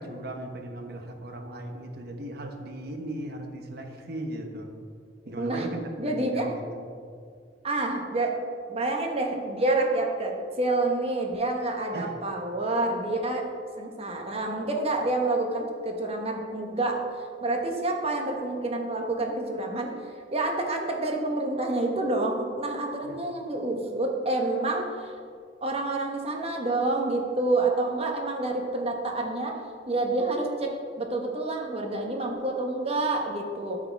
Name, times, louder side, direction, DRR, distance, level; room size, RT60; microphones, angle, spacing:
voice 1, 0.0-4.7 5.2-6.9 11.9-12.1 23.0-23.2, right 1 dB, 55° right, 4 dB, 1.1 m, -37 dB
voice 2, 5.4-5.7 6.0-6.5 7.6-8.3 8.7-13.4 13.8-17.0 17.4-25.1 25.6-29.5 29.9-33.8, right 2 dB, 35° right, 1 dB, 1.2 m, -28 dB
13.0 x 4.9 x 4.6 m, 2.2 s
head